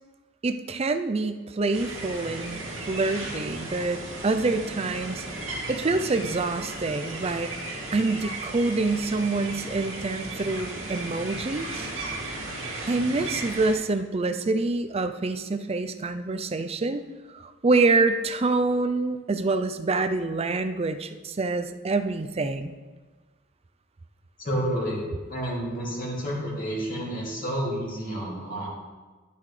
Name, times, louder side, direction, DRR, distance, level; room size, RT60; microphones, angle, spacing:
voice 1, 0.4-2.6 2.9-5.2 5.7-7.5 7.9-11.9 12.9-17.0 17.3-22.8, right 3 dB, 30° right, 9 dB, 0.5 m, -26 dB
sound 1, 1.7-13.7, right 2 dB, 80° right, 2.1 m, -35 dB
voice 2, 24.4-28.7, equal, 45° left, -6 dB, 2.5 m, -30 dB
11.0 x 8.3 x 3.3 m, 1.3 s
head